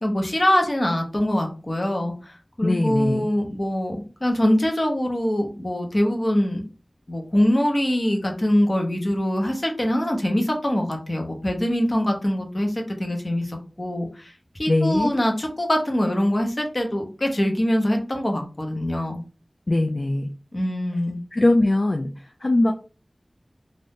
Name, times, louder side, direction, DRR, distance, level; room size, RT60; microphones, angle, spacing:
voice 1, 0.0-6.6 7.1-19.2 20.5-21.2, equal, 45° left, 3 dB, 0.9 m, -23 dB
voice 2, 2.6-3.3 14.7-15.2 19.7-20.3 21.3-22.7, left 2 dB, 60° left, 4 dB, 0.3 m, -21 dB
2.6 x 2.5 x 3.5 m, 0.35 s
wide cardioid pair, 60°, 0 cm